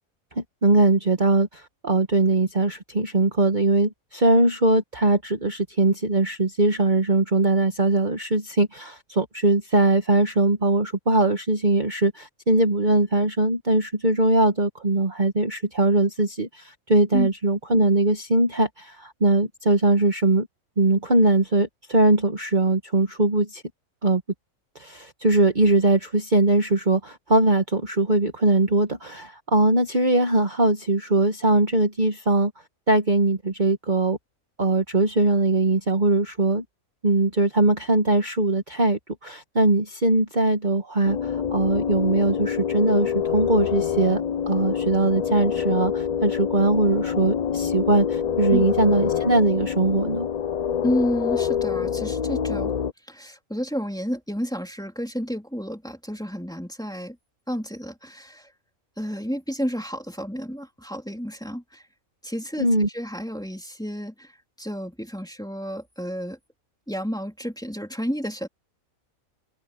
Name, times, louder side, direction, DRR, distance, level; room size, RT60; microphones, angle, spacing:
voice 1, 0.4-20.5 20.8-23.6 24.0-24.2 24.7-32.5 32.9-34.2 34.6-36.6 37.0-44.2 44.5-50.3 62.6-62.9, right 2 dB, 35° right, 1.6 m, -21 dB
sound 1, 41.0-52.9, left 8 dB, 75° left, 0.3 m, -26 dB
voice 2, 50.8-52.7 53.1-57.2 57.5-58.5 59.0-61.9 62.2-66.4 66.9-68.5, equal, 5° left, 3.1 m, -31 dB
omnidirectional pair, 1.5 m